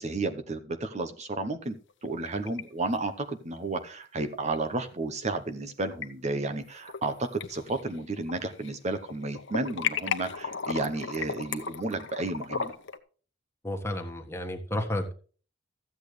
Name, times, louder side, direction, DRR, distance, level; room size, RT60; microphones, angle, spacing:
voice 1, 0.0-1.8 2.0-12.7, right 2 dB, 35° right, 8 dB, 0.9 m, -32 dB
sound 1, 1.9-2.6 2.9-3.0 4.5-4.6 5.7-6.1 6.6-7.1 7.4-8.7 9.0-13.0, left 6 dB, 65° left, 1.0 m, -35 dB
voice 2, 13.6-15.1, left 1 dB, 15° left, 3 dB, 1.5 m, -32 dB
14.0 x 8.5 x 3.2 m, 0.39 s
head